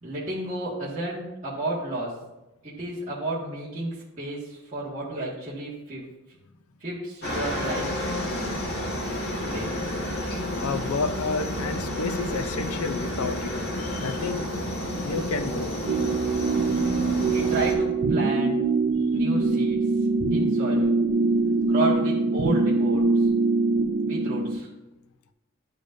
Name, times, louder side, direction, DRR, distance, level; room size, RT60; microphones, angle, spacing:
voice 1, 0.0-2.2 2.6-6.1 6.8-8.0 9.4-9.7 17.3-18.6 19.1-19.8 20.3-20.9 21.7-23.3 24.0-24.7, right 1 dB, 35° right, -10 dB, 1.8 m, -32 dB
Aircraft, 7.2-17.7, left 1 dB, 50° left, 1.8 m, -30 dB
voice 2, 10.6-13.5 13.8-14.5 15.0-15.8, left 4 dB, 80° left, 9 dB, 0.5 m, -30 dB
sound 1, 15.9-24.6, right 3 dB, 50° right, 0.6 m, -23 dB
11.5 x 5.2 x 2.6 m, 0.99 s
head